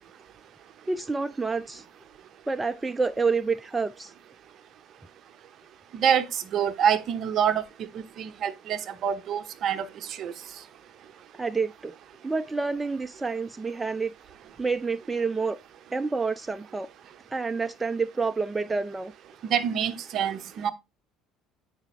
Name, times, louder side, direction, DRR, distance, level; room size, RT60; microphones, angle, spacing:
voice 1, 0.9-1.8 2.5-4.1 11.3-11.9 12.2-14.1 14.6-15.6 15.9-16.9 17.3-19.1, right 4 dB, 15° right, 0.4 m, -28 dB
voice 2, 5.9-7.6 7.9-9.9 10.2-10.3 19.5-20.7, right 8 dB, 50° right, 0.7 m, -26 dB
8.1 x 4.9 x 3.2 m
figure-of-eight pair, 60°, 0 cm